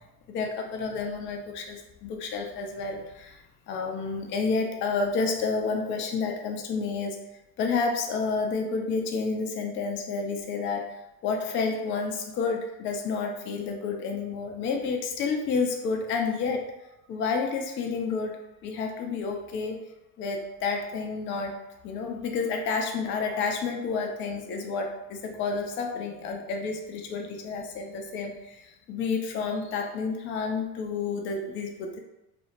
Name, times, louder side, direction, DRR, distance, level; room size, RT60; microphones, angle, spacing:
voice 1, 0.3-3.4 3.7-7.2 7.6-10.9 11.2-16.7 17.1-19.9 20.2-21.6 21.8-32.0, left 4 dB, 25° left, 2 dB, 0.3 m, -30 dB
2.4 x 2.0 x 2.8 m, 0.91 s
hypercardioid pair, 70°, 50 cm